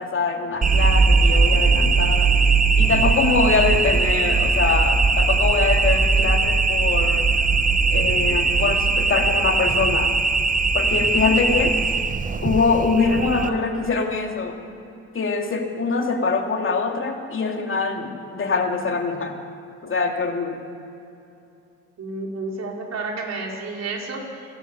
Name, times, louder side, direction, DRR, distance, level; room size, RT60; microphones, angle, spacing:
voice 1, 0.0-2.3 2.8-7.3 7.9-10.1 10.7-11.8 12.4-14.6 15.1-19.4 19.8-20.6, left 4 dB, 40° left, 2 dB, 2.9 m, -23 dB
sound 1, 0.6-13.5, right 4 dB, 25° right, 1.0 m, -19 dB
voice 2, 13.2-13.6 22.0-24.4, right 3 dB, 60° right, -1 dB, 4.8 m, -31 dB
27.5 x 12.0 x 8.4 m, 2.7 s
cardioid pair, 90°, 30 cm